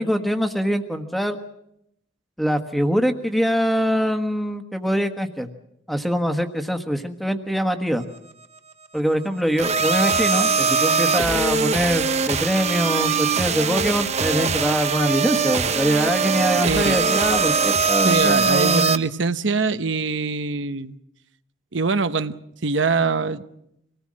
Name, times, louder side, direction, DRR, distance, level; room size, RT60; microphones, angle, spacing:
voice 1, 0.0-1.4 2.4-5.5 5.9-8.0 8.9-18.9, equal, ahead, 1.4 m, -23 dB
sound 1, 9.6-19.0, right 5 dB, 35° right, 0.9 m, -21 dB
voice 2, 16.6-17.0 18.0-20.9 21.7-22.4 22.6-23.4, right 4 dB, 75° right, 0.9 m, -23 dB
26.0 x 18.5 x 7.6 m
head